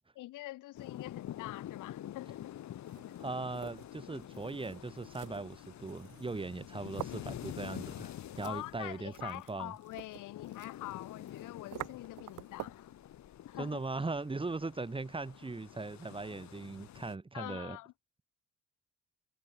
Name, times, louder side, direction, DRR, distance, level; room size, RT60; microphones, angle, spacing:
voice 1, 0.2-2.5 8.4-12.9 13.5-13.8 17.3-17.9, left 17 dB, 90° left, 1.3 m, -45 dB
sound 1, 0.7-17.2, left 12 dB, 65° left, 1.4 m, -47 dB
sound 2, 2.7-12.9, right 15 dB, 85° right, 3.8 m, -50 dB
voice 2, 3.2-9.7 13.6-17.8, right 3 dB, 15° right, 1.3 m, -39 dB
cardioid pair, 90°, 30 cm